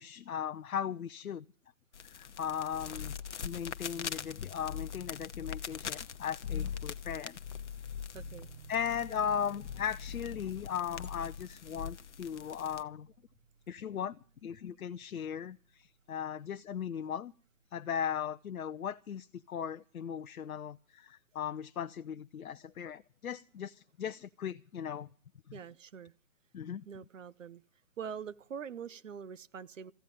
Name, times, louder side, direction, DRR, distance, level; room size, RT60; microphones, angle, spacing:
voice 1, 0.0-1.4 2.0-3.2 3.4-7.4 8.7-13.1 13.7-14.2 14.4-17.3 17.7-25.1 26.5-26.8, left 8 dB, 85° left, 0.6 m, -37 dB
sound 1, 1.9-12.8, left 7 dB, 55° left, 0.9 m, -46 dB
sound 2, 2.7-6.2 6.4-11.4 11.8-11.9, left 7 dB, 25° left, 0.7 m, -43 dB
sound 3, 8.1-18.7, right 6 dB, 40° right, 1.1 m, -59 dB
voice 2, 8.1-8.5 25.5-26.1 26.9-27.6 28.0-29.9, right 7 dB, 65° right, 0.8 m, -44 dB
15.0 x 9.1 x 9.9 m
hypercardioid pair, 160°, 42 cm